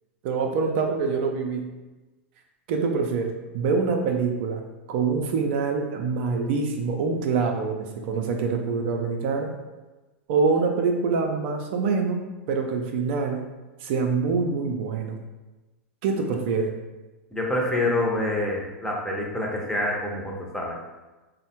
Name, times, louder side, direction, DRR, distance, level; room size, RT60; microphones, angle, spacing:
voice 1, 0.2-1.7 2.7-4.6 4.9-9.5 10.3-12.2 12.5-13.4 13.8-15.2 16.0-16.7, right 4 dB, 55° right, 3 dB, 0.4 m, -25 dB
voice 2, 17.3-20.8, left 1 dB, 5° left, -2 dB, 0.6 m, -26 dB
3.3 x 2.1 x 2.8 m, 1.1 s
hypercardioid pair, 100°, 7 cm